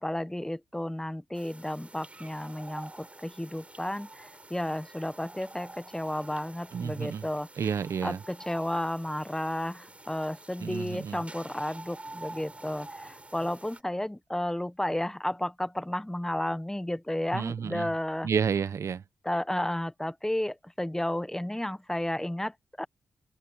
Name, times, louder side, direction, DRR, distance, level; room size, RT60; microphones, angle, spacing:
voice 1, 0.0-7.5 8.0-18.3 19.2-22.8, left 1 dB, 10° left, 1.4 m, -32 dB
sound 1, 1.3-13.8, right 2 dB, 25° right, 6.3 m, -48 dB
voice 2, 6.7-7.3 7.6-8.2 10.6-11.2 17.3-17.9 18.2-19.0, right 7 dB, 65° right, 1.0 m, -30 dB
supercardioid pair, 45°, 5 cm